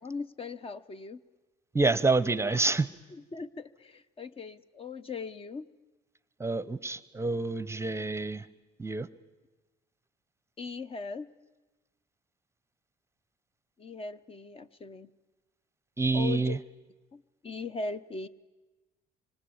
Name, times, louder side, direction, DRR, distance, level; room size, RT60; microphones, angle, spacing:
voice 1, 0.0-1.2 3.1-5.7 10.6-11.3 13.8-15.1 16.1-16.6 17.1-18.3, left 4 dB, 35° left, 13 dB, 0.9 m, -39 dB
voice 2, 1.7-2.9 6.4-8.5 8.8-9.1 16.0-16.6, right 3 dB, 15° right, 17 dB, 0.8 m, -27 dB
25.0 x 25.0 x 8.7 m, 1.2 s
cardioid pair, 110°, 17 cm